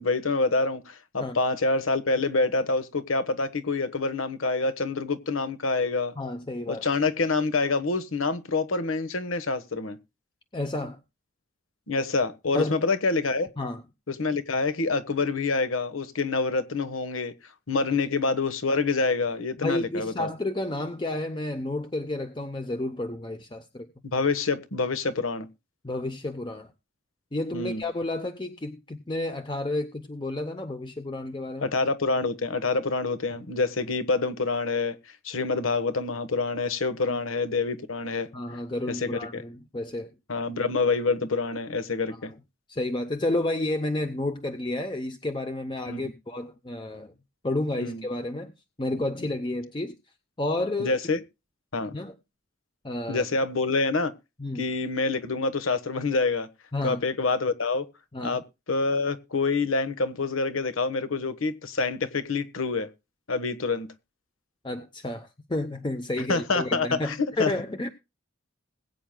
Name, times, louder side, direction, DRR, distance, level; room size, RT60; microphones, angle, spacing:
voice 1, 0.0-6.1 6.7-10.0 11.9-13.5 14.1-17.3 17.7-20.3 24.0-25.5 27.5-27.8 31.6-35.0 35.2-38.3 38.9-39.2 40.3-42.3 45.9-46.1 47.8-48.0 48.9-49.0 50.8-51.2 51.7-51.9 53.1-54.1 54.5-56.5 56.8-57.8 58.2-58.4 58.7-62.9 63.3-63.9 66.3-67.5, left 3 dB, 85° left, 1.3 m, -26 dB
voice 2, 6.2-6.8 10.5-11.0 12.5-12.8 13.6-13.8 19.6-23.9 25.8-26.7 27.3-31.7 33.3-33.4 37.1-37.2 38.3-40.1 42.7-47.1 47.4-48.5 48.8-49.9 50.4-51.0 51.9-52.1 52.8-53.2 54.4-54.7 56.7-57.0 58.1-58.4 64.6-67.9, left 2 dB, 25° left, 0.7 m, -31 dB
21.0 x 9.0 x 2.2 m
head